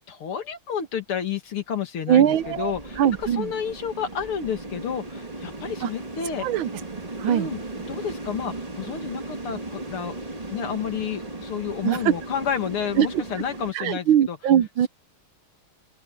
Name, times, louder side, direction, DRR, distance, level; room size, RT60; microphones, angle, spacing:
voice 1, 0.1-3.0 3.4-6.5 7.3-7.6 7.9-10.2 10.5-14.4, left 8 dB, 80° left, 3.0 m, -30 dB
voice 2, 2.1-3.5 5.8-5.9 6.4-6.7 7.2-7.5 11.8-12.1 13.0-13.2 13.7-14.9, right 10 dB, 70° right, 1.5 m, -21 dB
sound 1, 2.2-13.7, right 2 dB, 20° right, 1.8 m, -37 dB
open air
omnidirectional pair, 2.4 m